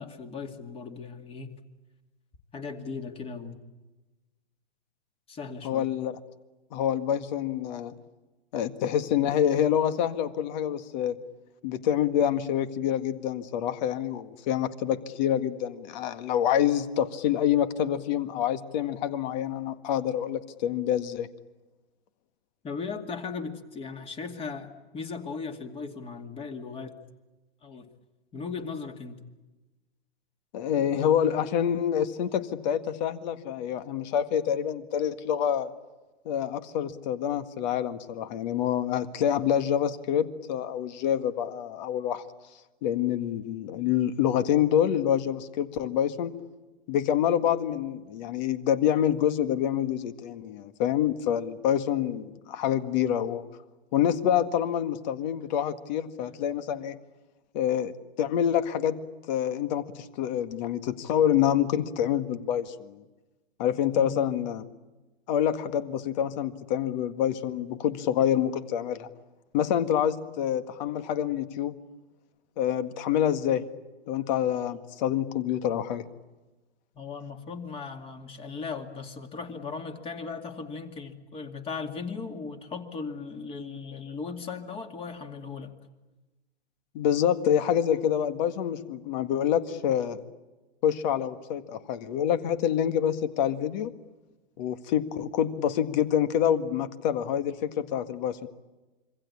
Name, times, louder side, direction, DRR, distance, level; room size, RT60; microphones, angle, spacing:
voice 1, 0.0-1.5 2.5-3.6 5.3-5.9 22.6-26.9 27.6-27.8 28.3-29.2 63.9-64.4 77.0-85.7, left 5 dB, 15° left, 6 dB, 2.3 m, -37 dB
voice 2, 5.6-6.2 6.7-7.9 8.5-11.2 11.6-21.3 30.5-35.7 36.3-42.2 42.8-46.4 46.9-53.5 53.9-57.0 57.5-57.9 58.2-59.0 59.3-63.0 63.6-64.6 65.3-69.1 69.5-71.8 72.6-73.6 74.1-76.0 86.9-90.2 90.8-93.9 94.6-98.5, left 10 dB, 45° left, 10 dB, 1.9 m, -27 dB
26.5 x 24.5 x 8.6 m, 1.1 s
hypercardioid pair, 130°, 32 cm